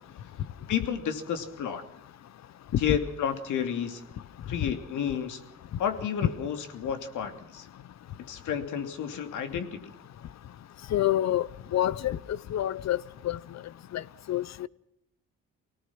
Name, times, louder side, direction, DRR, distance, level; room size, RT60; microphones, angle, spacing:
voice 1, 0.7-1.8 2.8-4.0 4.5-5.4 5.8-7.7 8.3-9.8, left 8 dB, 80° left, 2.9 m, -31 dB
voice 2, 10.9-11.5 11.7-12.2 12.5-13.0 13.2-13.4 13.9-14.0 14.3-14.7, left 13 dB, 60° left, 0.9 m, -26 dB
25.5 x 18.5 x 6.1 m
cardioid pair, 90°, 30 cm